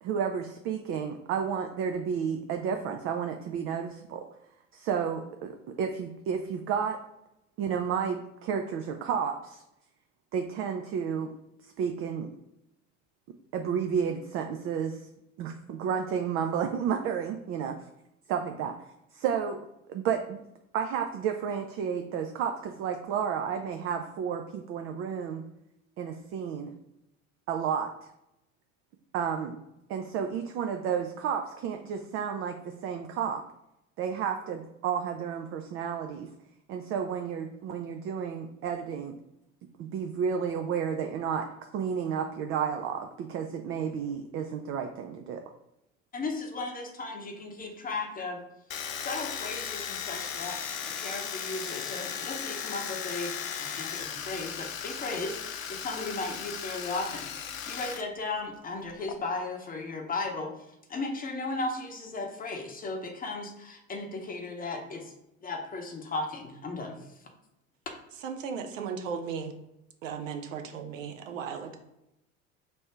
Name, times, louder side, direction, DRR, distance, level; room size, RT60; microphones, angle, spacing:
voice 1, 0.0-4.3 4.7-7.0 7.6-9.6 10.3-11.3 11.6-12.3 13.5-15.0 15.4-17.8 18.3-18.7 19.1-19.6 19.9-20.4 20.7-25.4 26.0-26.7 27.5-27.9 29.1-29.6 29.9-33.4 34.0-36.3 36.7-39.2 39.8-41.5 41.7-45.4, right 7 dB, 35° right, 5 dB, 0.4 m, -31 dB
voice 2, 46.1-48.4 48.9-50.6 50.8-53.3 53.6-60.5 60.9-65.1 65.4-67.0, left 3 dB, 20° left, 3 dB, 0.8 m, -36 dB
Domestic sounds home sounds, 48.7-58.0 58.3-59.1, left 7 dB, 80° left, 0.5 m, -36 dB
voice 3, 68.2-69.5 70.0-71.8, right 6 dB, 70° right, 5 dB, 0.7 m, -36 dB
3.4 x 2.6 x 4.4 m, 0.87 s
figure-of-eight pair, 70°, 39 cm